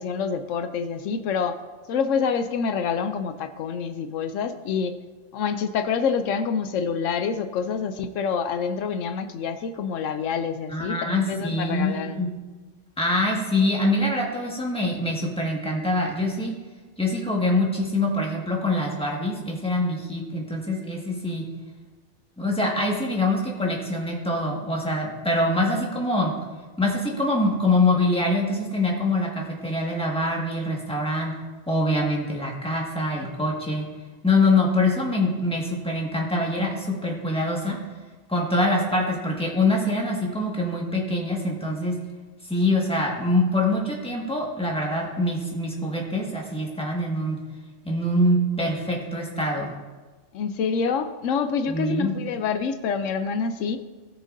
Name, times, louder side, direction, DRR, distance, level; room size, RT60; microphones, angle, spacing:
voice 1, 0.0-1.6 1.9-5.0 5.3-12.3 50.3-53.8, left 6 dB, 80° left, 9 dB, 0.9 m, -27 dB
voice 2, 10.7-12.3 13.0-16.5 17.0-21.4 22.4-26.3 26.8-31.3 31.7-33.8 34.2-37.8 38.3-42.0 42.5-47.4 47.8-49.7 51.7-52.1, left 1 dB, 5° left, -3 dB, 1.7 m, -24 dB
18.0 x 6.4 x 2.6 m, 1.3 s
omnidirectional pair, 1.3 m